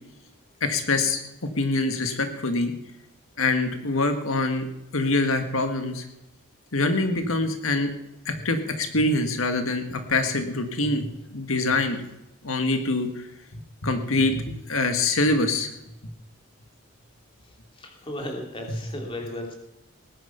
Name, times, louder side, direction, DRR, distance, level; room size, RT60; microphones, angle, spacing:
voice 1, 0.6-1.2 1.6-2.7 3.4-6.1 6.7-7.9 8.3-12.0 12.4-13.3 13.8-15.7, left 2 dB, 90° left, 7 dB, 1.7 m, -24 dB
voice 2, 17.8-19.5, left 1 dB, 25° left, 2 dB, 2.9 m, -35 dB
18.5 x 10.5 x 5.7 m, 0.88 s
head